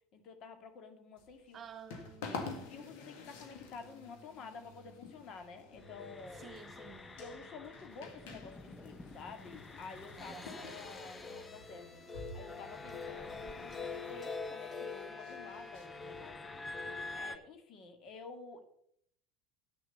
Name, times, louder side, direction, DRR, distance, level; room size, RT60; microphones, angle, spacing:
voice 1, 0.1-1.6 2.7-6.4 7.2-12.0 12.3-16.5 16.8-18.6, left 4 dB, 50° left, 2.0 m, -50 dB
sound 1, 1.2-16.3, left 4 dB, 65° left, 1.9 m, -50 dB
voice 2, 1.5-3.0 3.4-3.5 6.3-7.2 10.1-11.0, right 7 dB, 35° right, 1.4 m, -53 dB
sound 2, 5.8-17.4, left 4 dB, 20° left, 1.0 m, -45 dB
8.8 x 6.6 x 6.9 m
hypercardioid pair, 75°, 0 cm